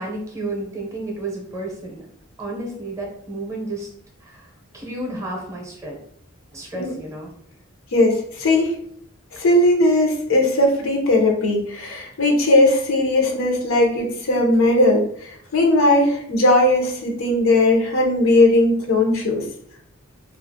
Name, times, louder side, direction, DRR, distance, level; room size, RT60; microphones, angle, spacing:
voice 1, 0.0-2.0 2.4-3.9 4.2-4.5 4.7-6.0 6.5-7.3, right 2 dB, 15° right, -2 dB, 0.6 m, -31 dB
voice 2, 7.9-8.7 9.3-19.4, left 1 dB, 85° left, 0 dB, 0.6 m, -18 dB
2.5 x 2.3 x 2.6 m, 0.66 s
head